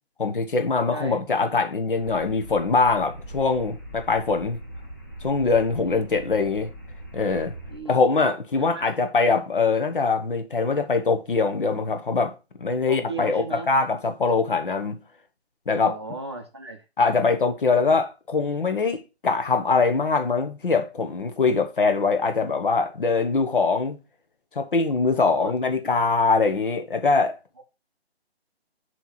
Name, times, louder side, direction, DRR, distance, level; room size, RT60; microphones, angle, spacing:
voice 1, 0.2-4.6 5.2-6.7 7.1-7.5 7.9-12.3 12.6-15.0 15.7-16.0 17.0-24.0 24.5-27.4, left 4 dB, 50° left, 1.1 m, -23 dB
sound 1, 1.9-7.8, equal, 15° left, 0.6 m, -40 dB
voice 2, 7.7-8.0 8.6-8.9 12.9-13.7 15.8-16.8 25.1-25.5 27.6-27.7, right 3 dB, 25° right, 0.7 m, -35 dB
6.8 x 3.1 x 5.6 m
hypercardioid pair, 170°, 33 cm